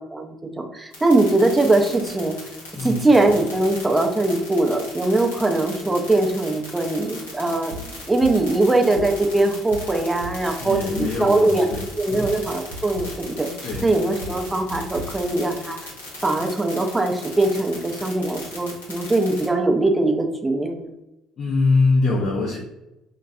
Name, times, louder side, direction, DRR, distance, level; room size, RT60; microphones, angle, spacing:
voice 1, 0.7-2.4 2.8-10.9 11.2-11.7 12.0-15.8 16.2-20.9, right 2 dB, 15° right, 4 dB, 0.5 m, -21 dB
sound 1, 0.9-19.5, left 2 dB, 80° left, 0.7 m, -38 dB
sound 2, 7.5-15.1, right 1 dB, 70° right, 0.4 m, -36 dB
voice 2, 10.6-12.3 13.6-13.9 21.4-22.6, left 3 dB, 45° left, -2 dB, 0.5 m, -23 dB
2.2 x 2.2 x 2.6 m, 0.94 s
figure-of-eight pair, 50°, 0 cm